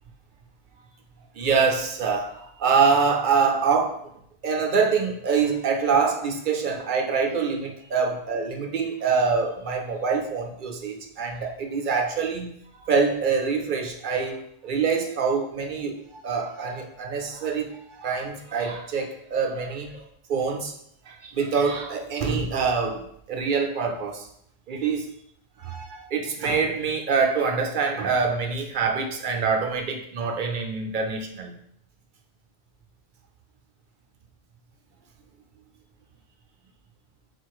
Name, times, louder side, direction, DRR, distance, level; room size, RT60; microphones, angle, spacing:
voice 1, 1.3-4.0 4.4-12.6 12.8-20.0 20.3-20.7 21.1-24.3 24.7-25.1 25.6-31.6, right 5 dB, 55° right, 0.7 m, -25 dB
4.1 x 2.5 x 4.7 m
omnidirectional pair, 1.1 m